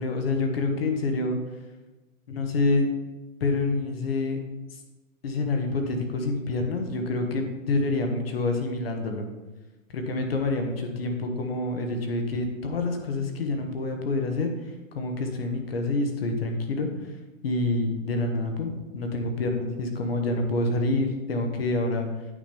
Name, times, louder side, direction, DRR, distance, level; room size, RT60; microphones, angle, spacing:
voice 1, 0.0-1.4 2.3-2.9 3.4-4.4 5.2-9.3 9.9-14.5 14.9-16.9 17.4-22.1, left 2 dB, 45° left, 4 dB, 1.4 m, -27 dB
8.8 x 5.2 x 5.3 m, 1.1 s
hypercardioid pair, 180°, 40 cm